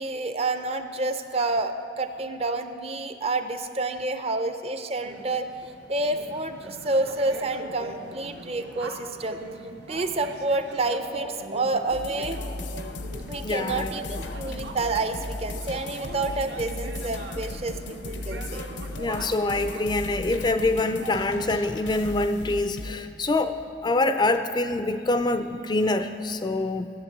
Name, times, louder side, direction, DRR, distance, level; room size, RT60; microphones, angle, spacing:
voice 1, 0.0-5.5 5.9-9.4 9.9-12.4 13.3-18.6, right 2 dB, 35° right, 8 dB, 0.6 m, -29 dB
sound 1, 5.0-22.1, right 2 dB, 65° right, 1.0 m, -41 dB
sound 2, 11.9-22.9, left 2 dB, 80° left, 0.7 m, -37 dB
voice 2, 13.4-13.9 19.0-23.6 23.8-26.9, left 2 dB, 25° left, 9 dB, 0.4 m, -25 dB
14.0 x 8.4 x 7.3 m, 2.5 s
head